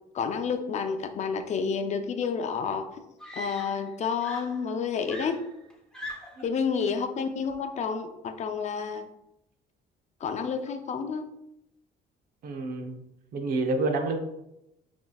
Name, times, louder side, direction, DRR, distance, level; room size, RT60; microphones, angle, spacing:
voice 1, 0.1-2.9 3.3-5.4 6.4-9.1 10.2-11.2, left 6 dB, 45° left, 7 dB, 0.6 m, -30 dB
Screaming, 3.2-4.0 4.2-6.5 7.5-7.8, equal, 5° left, 0.9 m, -42 dB
voice 2, 12.4-13.0 13.3-14.2, right 2 dB, 60° right, 4 dB, 0.8 m, -28 dB
7.1 x 2.9 x 2.3 m, 0.85 s
cardioid pair, 110°, 17 cm